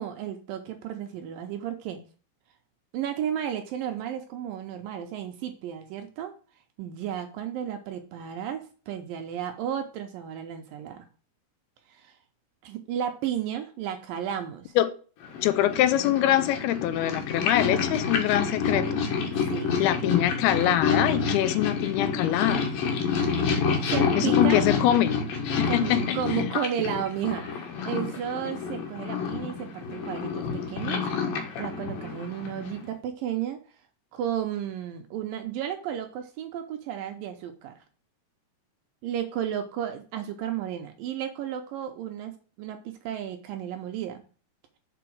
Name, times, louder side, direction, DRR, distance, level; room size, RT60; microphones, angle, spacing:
voice 1, 0.0-2.0 2.9-6.3 6.8-11.1 11.9-12.2 12.6-14.7 19.5-19.8 23.8-24.7 25.7-31.1 31.6-33.6 34.1-37.8 39.0-44.2, right 9 dB, 75° right, 5 dB, 2.2 m, -33 dB
Purr, 15.2-32.9, left 5 dB, 65° left, 3.0 m, -28 dB
voice 2, 15.4-18.9 19.8-22.7 24.2-25.1 25.5-26.5, left 13 dB, 85° left, 13 dB, 2.5 m, -24 dB
6.9 x 4.8 x 6.1 m, 0.38 s
omnidirectional pair, 4.6 m